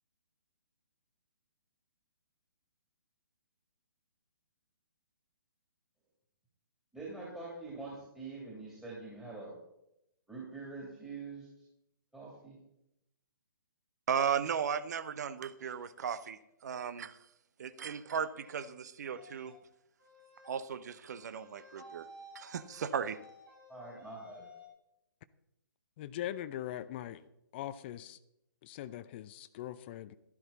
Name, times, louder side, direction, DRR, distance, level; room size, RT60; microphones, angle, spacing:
voice 1, 6.9-9.5 10.3-11.5 12.1-12.6 23.7-24.5, right 3 dB, 5° right, -6 dB, 2.9 m, -45 dB
voice 2, 14.1-17.2 17.6-19.5 20.5-22.1 22.3-23.2, right 7 dB, 50° right, 14 dB, 0.8 m, -36 dB
sound 1, 18.3-18.7 19.1-19.6 20.0-20.5 21.1-24.7, left 1 dB, 70° right, 6.0 m, -55 dB
voice 3, 26.0-27.2 27.5-28.2 28.6-30.1, left 12 dB, 30° left, 13 dB, 0.5 m, -41 dB
12.5 x 12.0 x 4.1 m, 0.81 s
figure-of-eight pair, 130°, 11 cm